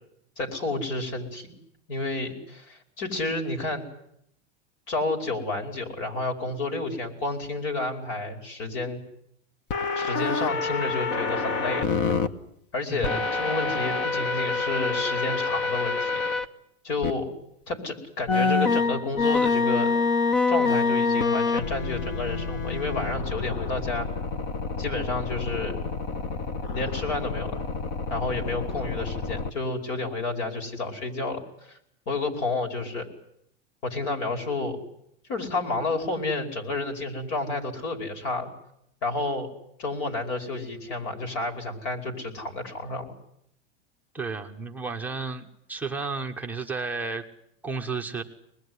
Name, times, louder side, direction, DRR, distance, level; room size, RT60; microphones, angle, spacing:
voice 1, 0.4-1.5 1.9-3.9 4.9-9.0 10.0-11.9 12.7-16.2 16.8-17.3 17.7-19.9 20.5-24.1 24.8-25.8 26.7-27.6 28.1-31.8 32.1-33.1 33.8-34.8 35.3-38.5 39.0-39.5 39.8-43.1, left 3 dB, 50° left, 6 dB, 5.3 m, -30 dB
sound 1, 9.7-12.3 13.0-16.4 17.0-17.1 18.3-29.5, left 4 dB, 35° left, 1.3 m, -27 dB
voice 2, 12.9-13.2 44.1-47.3 47.6-48.2, right 4 dB, 5° right, 1 dB, 1.1 m, -32 dB
25.0 x 20.5 x 9.7 m, 0.75 s
supercardioid pair, 165°, 33 cm